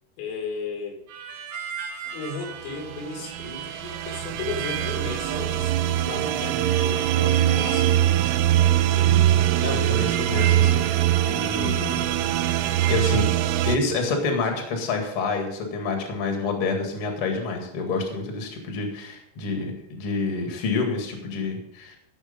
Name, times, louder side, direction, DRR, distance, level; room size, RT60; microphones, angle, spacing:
voice 1, 0.2-1.0 2.1-8.3, left 4 dB, 85° left, 2 dB, 5.0 m, -35 dB
Harmonica, 1.1-13.0, right 7 dB, 65° right, 2.0 m, -37 dB
sound 1, 2.8-13.8, right 12 dB, 85° right, 3.2 m, -22 dB
voice 2, 8.9-9.3 9.5-12.1 12.9-13.3 13.6-22.0, left 3 dB, 50° left, 3 dB, 1.7 m, -28 dB
15.0 x 6.3 x 5.2 m, 0.76 s
omnidirectional pair, 5.7 m